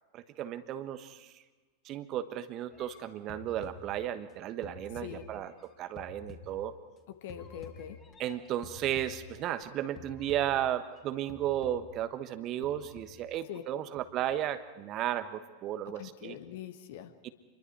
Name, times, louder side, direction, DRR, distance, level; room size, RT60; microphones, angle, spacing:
voice 1, 0.1-1.3 1.8-5.5 5.8-6.7 8.2-16.4 17.2-17.3, right 11 dB, 35° right, 11 dB, 1.3 m, -34 dB
sound 1, 2.7-4.3 4.6-7.0 7.3-9.6 10.0-11.0 11.3-12.1 12.6-13.7 14.0-14.5, left 5 dB, 25° left, 3.5 m, -51 dB
voice 2, 7.1-8.0 13.5-13.6 15.9-17.1, left 10 dB, 55° left, 9 dB, 1.7 m, -43 dB
28.0 x 23.0 x 4.7 m, 1.3 s
figure-of-eight pair, 90°, 0 cm